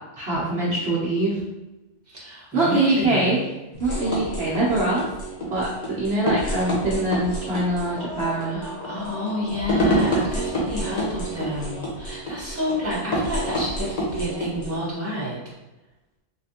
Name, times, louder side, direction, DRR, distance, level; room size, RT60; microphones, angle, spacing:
voice 1, 0.2-1.4 2.5-3.4 3.8-5.1 5.5-8.6, right 2 dB, 60° right, -6 dB, 1.1 m, -23 dB
voice 2, 2.1-3.4 8.4-15.4, left 1 dB, 10° right, -7 dB, 1.5 m, -29 dB
sound 1, 3.7-14.8, right 1 dB, 40° left, 0.9 m, -28 dB
sound 2, 7.7-11.7, left 1 dB, 70° left, 1.7 m, -39 dB
4.0 x 3.2 x 2.8 m, 1.0 s
omnidirectional pair, 1.3 m